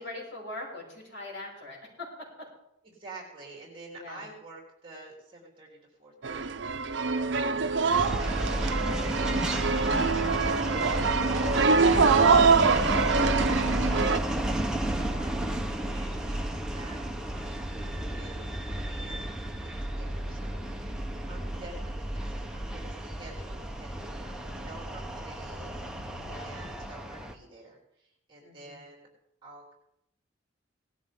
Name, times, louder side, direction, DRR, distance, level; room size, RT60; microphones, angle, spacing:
voice 1, 0.0-2.5 3.9-4.3 7.2-7.8 26.2-26.5 28.4-28.8, left 2 dB, 70° left, -3 dB, 6.3 m, -42 dB
voice 2, 2.8-6.6 7.1-7.6 8.1-9.9 10.5-25.7 26.4-29.1 29.4-29.7, right 2 dB, 25° right, -1 dB, 3.5 m, -49 dB
sound 1, 6.2-14.2, right 4 dB, 65° right, 0.6 m, -24 dB
sound 2, 7.9-27.3, right 1 dB, 5° right, 1.0 m, -32 dB
18.5 x 13.5 x 3.7 m, 0.80 s
head